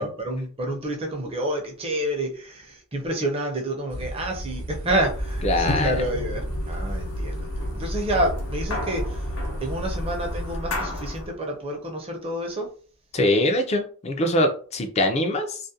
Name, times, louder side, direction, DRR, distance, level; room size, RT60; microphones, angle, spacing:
voice 1, 0.0-9.2 9.6-12.7, right 1 dB, 25° right, 1 dB, 0.6 m, -29 dB
sound 1, 3.9-10.6, equal, 80° right, 0.8 m, -34 dB
sound 2, 4.8-11.3, left 1 dB, 75° left, 0.6 m, -31 dB
voice 2, 5.4-6.0 13.1-15.6, left 1 dB, 30° left, 5 dB, 0.4 m, -23 dB
2.4 x 2.1 x 2.7 m, 0.42 s
head